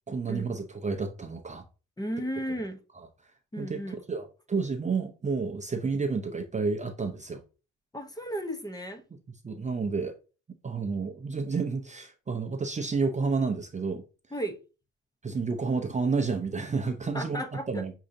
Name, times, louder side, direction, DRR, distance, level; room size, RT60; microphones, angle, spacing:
voice 1, 0.1-1.6 2.9-3.1 3.6-3.8 4.1-7.4 9.4-10.1 10.6-14.0 15.2-17.9, right 4 dB, 25° right, 0.6 m, -30 dB
voice 2, 2.0-2.8 3.5-4.0 7.9-9.0 14.3-14.6 17.1-17.9, equal, 15° left, 0.7 m, -34 dB
6.2 x 2.8 x 2.6 m
cardioid pair, 90°, 30 cm